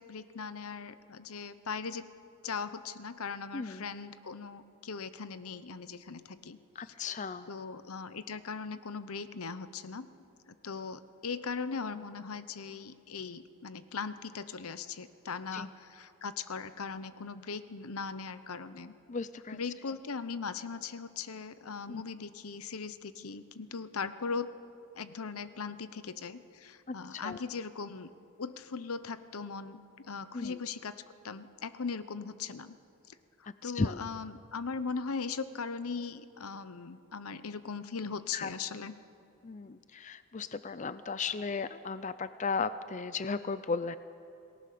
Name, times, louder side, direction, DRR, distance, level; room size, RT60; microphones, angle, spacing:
voice 1, 0.0-2.1 2.4-10.1 10.5-18.9 19.5-24.5 24.9-28.1 28.4-30.9 31.2-32.8 33.1-38.9, left 5 dB, 85° left, 13 dB, 0.9 m, -39 dB
voice 2, 3.5-3.9 6.8-7.5 15.5-15.6 19.1-19.6 21.9-22.0 26.9-27.4 30.3-30.6 33.5-34.0 38.3-38.5 39.4-44.0, left 4 dB, 35° left, 13 dB, 0.5 m, -35 dB
28.0 x 19.0 x 6.8 m, 2.6 s
head